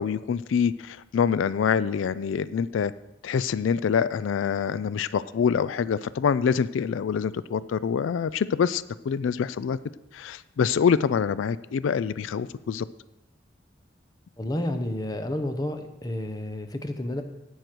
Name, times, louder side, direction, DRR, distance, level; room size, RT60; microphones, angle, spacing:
voice 1, 0.0-2.9 3.2-9.8 10.1-12.8, left 7 dB, 85° left, 17 dB, 0.3 m, -25 dB
voice 2, 14.4-17.2, left 1 dB, 20° left, 7 dB, 0.8 m, -30 dB
17.0 x 6.4 x 4.5 m, 0.95 s
head